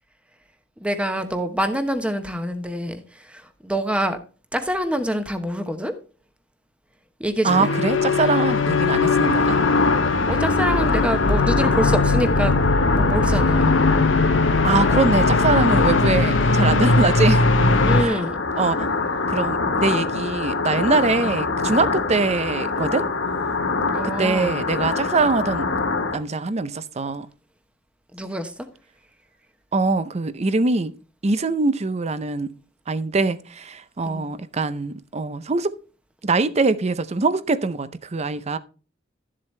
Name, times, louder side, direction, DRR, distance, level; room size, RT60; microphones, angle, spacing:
voice 1, 0.8-3.0 3.3-4.2 4.5-5.9 7.2-7.7 10.2-12.6 12.9-13.8 17.8-18.4 23.9-24.5 28.1-28.5 34.0-34.2, equal, 5° right, 1.0 m, -25 dB
voice 2, 7.4-9.6 14.6-17.4 18.0-18.2 18.6-18.9 19.3-23.1 24.0-25.7 26.1-27.3 29.7-30.9 31.2-32.5 32.9-35.7 36.2-38.6, right 3 dB, 35° right, 0.6 m, -23 dB
sound 1, 7.5-18.0, left 3 dB, 70° left, 0.8 m, -20 dB
sound 2, 7.6-26.2, left 3 dB, 85° left, 1.4 m, -25 dB
12.5 x 7.6 x 3.2 m
head